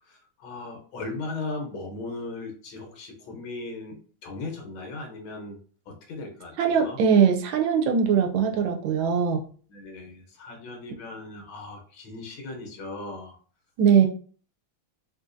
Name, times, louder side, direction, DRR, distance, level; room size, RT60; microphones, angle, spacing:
voice 1, 0.0-5.6 5.9-7.0 9.7-13.4, left 3 dB, 75° left, 2 dB, 1.6 m, -38 dB
voice 2, 6.6-9.4 13.8-14.1, right 7 dB, 80° right, 4 dB, 1.3 m, -21 dB
3.9 x 2.7 x 2.5 m, 0.43 s
omnidirectional pair, 2.3 m